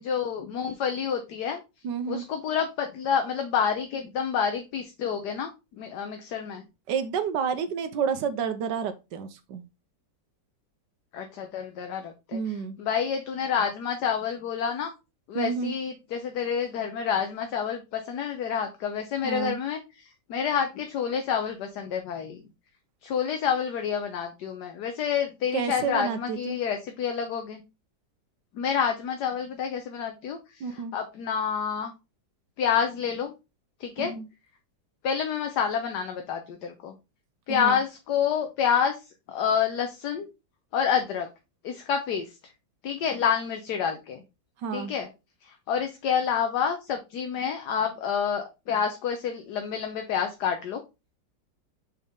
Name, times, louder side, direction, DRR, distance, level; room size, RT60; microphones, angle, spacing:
voice 1, 0.0-1.6 2.1-5.5 5.8-6.6 11.1-14.9 15.3-22.4 23.0-27.6 28.5-31.9 32.6-33.3 33.8-34.1 35.0-36.9 37.5-40.3 40.7-41.3 41.6-42.4 42.8-44.2 44.7-45.1 45.4-50.8, left 7 dB, 65° left, 1.3 m, -28 dB
voice 2, 1.8-2.3 6.9-9.6 12.3-12.8 15.3-15.7 19.2-19.6 25.5-26.6 30.6-30.9 34.0-34.2 37.5-37.8 44.6-44.9, right 7 dB, 75° right, 1.3 m, -30 dB
5.9 x 4.3 x 3.6 m
omnidirectional pair, 2.0 m